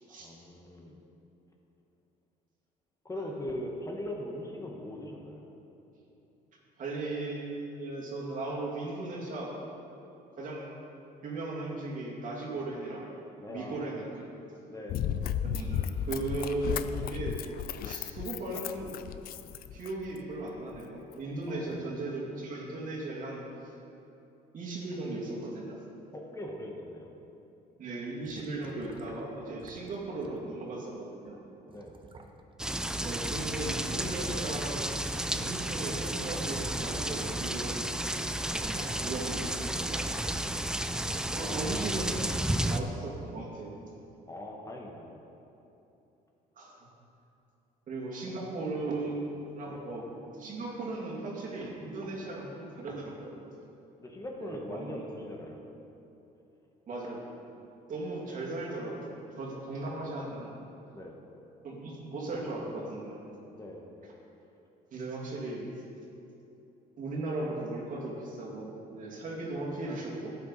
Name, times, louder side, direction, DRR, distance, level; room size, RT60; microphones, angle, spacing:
voice 1, 0.1-1.0 3.0-5.4 12.5-12.6 13.4-13.8 14.7-15.0 21.5-21.8 26.1-27.2 29.7-29.8 31.7-31.9 38.5-39.1 41.4-41.9 42.6-42.7 44.3-45.2 49.7-49.8 54.0-55.6 57.6-57.7 59.5-59.6 60.9-61.2 63.5-63.9 69.6-69.7, left 1 dB, 20° left, 0 dB, 1.3 m, -41 dB
voice 2, 6.8-9.5 10.4-10.7 11.2-13.1 13.5-14.3 15.4-17.4 17.8-18.9 19.7-23.7 24.5-25.8 27.8-31.4 33.0-37.8 38.5-40.3 41.4-42.2 42.6-43.8 46.6-46.8 47.9-50.0 50.3-53.4 54.4-55.0 56.9-57.3 57.9-60.6 61.6-63.3 64.9-65.7 67.0-70.4, right 2 dB, 50° right, -3 dB, 2.4 m, -37 dB
Run, 14.9-20.2 20.7-20.8, left 9 dB, 60° left, 0.4 m, -34 dB
sound 1, 28.3-29.2 29.6-29.9 30.2-30.4 31.3-31.4 31.7-32.6 32.9-34.4 35.0-36.5 36.8-37.6 38.1-38.2 38.7-39.3 39.6-40.7 41.0-41.7 42.4-42.5, right 4 dB, 30° right, 0.9 m, -51 dB
sound 2, 32.6-42.8, right 1 dB, 5° right, 0.4 m, -32 dB
12.0 x 8.7 x 4.1 m, 2.9 s
cardioid pair, 110°, 17 cm